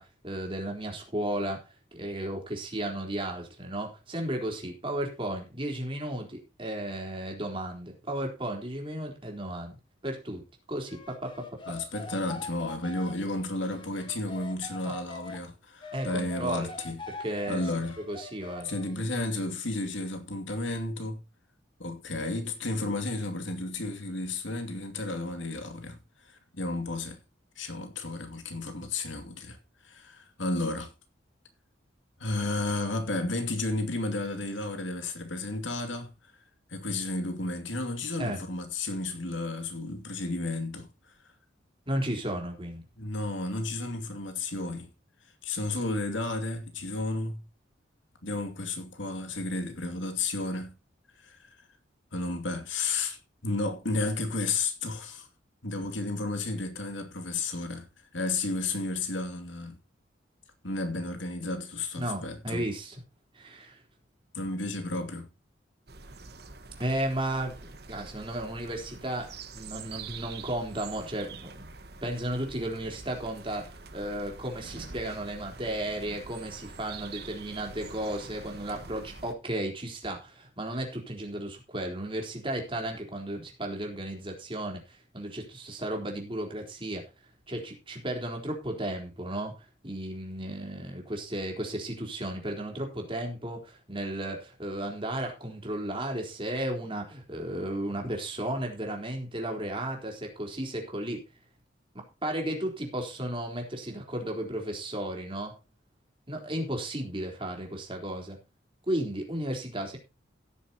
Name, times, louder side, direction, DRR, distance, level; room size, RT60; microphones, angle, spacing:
voice 1, 0.0-1.6 1.9-9.8 10.0-10.4 10.7-11.7 14.8-15.0 15.9-16.7 17.1-17.6 18.0-18.7 38.2-38.4 41.9-42.8 62.0-63.0 63.3-63.8 66.8-71.7 72.0-87.1 87.5-89.5 89.8-101.2 101.9-105.5 106.3-108.4 108.9-110.0, right 1 dB, 25° right, 3.9 m, -34 dB
sound 1, 10.9-15.4 15.8-19.0, left 3 dB, 25° left, 2.0 m, -43 dB
voice 2, 11.7-17.0 17.5-18.0 18.6-21.2 21.8-26.0 26.3-27.2 27.6-29.6 29.8-30.9 32.2-36.1 36.7-40.9 43.0-44.9 45.4-47.4 48.2-50.8 51.2-51.6 52.1-53.2 53.4-55.3 55.6-57.9 58.1-59.8 60.6-62.7 64.3-65.3, left 2 dB, 80° left, 2.5 m, -32 dB
sound 2, 65.9-79.3, right 4 dB, 55° right, 1.4 m, -45 dB
16.5 x 9.8 x 2.9 m
head